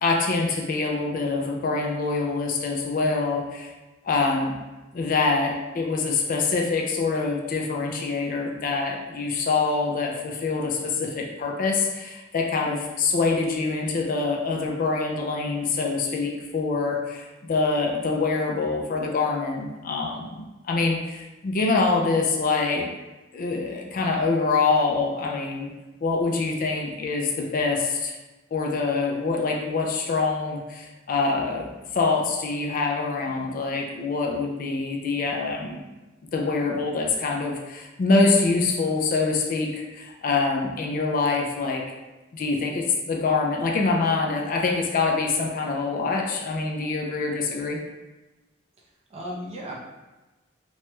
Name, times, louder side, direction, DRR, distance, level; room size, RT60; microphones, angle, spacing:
voice 1, 0.0-3.7 4.0-4.6 4.9-22.9 23.3-25.7 26.0-28.2 28.5-35.8 36.3-41.8 42.3-47.8, left 3 dB, 45° left, 0 dB, 0.4 m, -25 dB
voice 2, 48.8-49.7, equal, 30° right, -4 dB, 0.6 m, -36 dB
3.1 x 2.2 x 2.9 m, 1.1 s
head